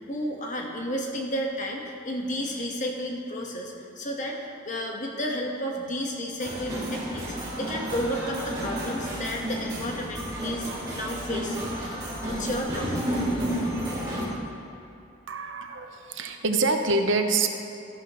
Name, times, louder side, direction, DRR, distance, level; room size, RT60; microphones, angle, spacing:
voice 1, 0.1-4.4 4.6-11.6 12.2-13.2, equal, 40° left, 0 dB, 1.3 m, -32 dB
sound 1, 6.4-14.3, equal, 20° right, 2.5 m, -31 dB
voice 2, 15.3-17.5, right 3 dB, 80° right, 5 dB, 0.8 m, -25 dB
13.5 x 11.5 x 3.1 m, 2.7 s
head